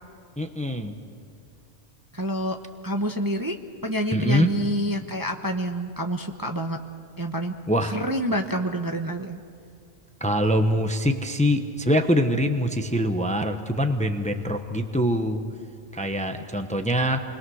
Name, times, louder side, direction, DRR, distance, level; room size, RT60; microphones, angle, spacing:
voice 1, 0.4-0.9 4.1-4.5 7.7-7.9 10.2-15.4 15.9-17.2, equal, 5° left, 7 dB, 0.9 m, -24 dB
voice 2, 2.1-2.6 2.8-3.6 3.8-6.8 7.2-7.5 7.9-9.4, equal, 20° right, 3 dB, 1.0 m, -27 dB
29.0 x 21.5 x 6.4 m, 2.5 s
omnidirectional pair, 1.3 m